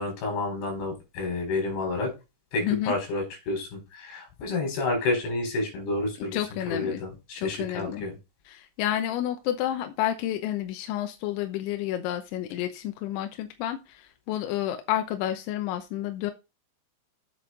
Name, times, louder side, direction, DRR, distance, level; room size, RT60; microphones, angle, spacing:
voice 1, 0.0-2.1 2.5-6.4 6.7-8.1, left 2 dB, 55° left, 3 dB, 6.1 m, -30 dB
voice 2, 2.6-2.9 6.3-7.0 7.4-8.0 8.5-16.3, left 12 dB, 80° left, 6 dB, 2.9 m, -30 dB
8.7 x 8.0 x 3.9 m, 0.26 s
omnidirectional pair, 6.0 m